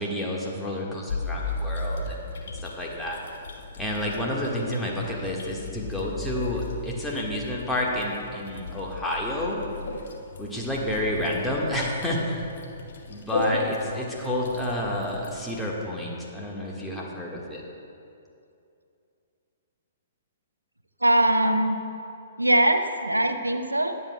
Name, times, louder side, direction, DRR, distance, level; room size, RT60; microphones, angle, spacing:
voice 1, 0.0-3.2 3.8-9.6 10.4-12.4 13.1-17.6, left 1 dB, 5° left, -3 dB, 1.5 m, -30 dB
sound 1, 1.1-15.6, left 3 dB, 55° left, 1.0 m, -35 dB
voice 2, 21.0-21.8 22.4-23.9, right 1 dB, 85° right, 8 dB, 0.6 m, -21 dB
20.0 x 7.7 x 2.2 m, 2.6 s
figure-of-eight pair, 115°, 0 cm